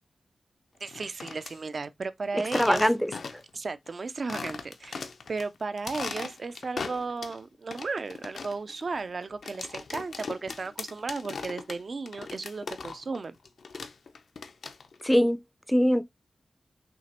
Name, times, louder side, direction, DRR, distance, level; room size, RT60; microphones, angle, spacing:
sound 1, 0.8-1.5 2.4-3.5 3.9-4.0 4.3-5.4 5.8-7.4 7.7-13.2 13.4-15.0, left 5 dB, 80° left, 0.6 m, -39 dB
voice 1, 0.8-2.8 3.5-13.4, right 4 dB, 55° right, 0.4 m, -35 dB
voice 2, 2.5-3.4 15.0-15.4 15.7-16.0, equal, 5° left, 0.4 m, -23 dB
6.1 x 2.9 x 2.9 m
wide cardioid pair, 110°, 0 cm